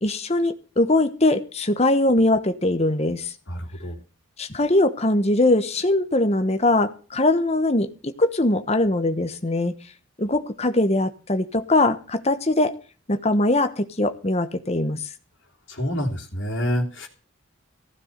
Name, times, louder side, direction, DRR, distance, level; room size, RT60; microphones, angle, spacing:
voice 1, 0.0-3.3 4.4-9.7 10.2-12.7 13.1-15.0, left 2 dB, 30° left, 10 dB, 1.1 m, -21 dB
voice 2, 3.5-4.0 15.7-17.1, equal, 70° left, -3 dB, 2.9 m, -27 dB
15.5 x 7.0 x 6.7 m, 0.38 s
head